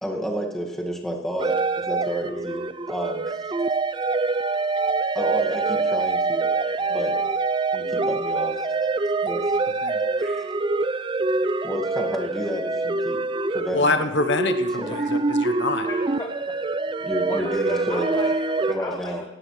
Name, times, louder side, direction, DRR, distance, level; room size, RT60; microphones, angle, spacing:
voice 1, 0.0-3.5 5.1-6.5 6.9-7.3 7.7-8.7 9.2-9.6 10.2-10.5 11.6-13.2 13.5-14.0 14.8-15.1 17.0-18.2 18.7-19.2, equal, ahead, -1 dB, 1.8 m, -30 dB
sound 1, 1.4-18.7, right 3 dB, 25° right, 0.4 m, -25 dB
voice 2, 13.7-15.9, left 3 dB, 60° left, 7 dB, 1.0 m, -25 dB
voice 3, 15.9-16.6 17.3-19.3, left 2 dB, 20° left, 2 dB, 0.9 m, -35 dB
17.5 x 15.5 x 3.2 m, 1.1 s
head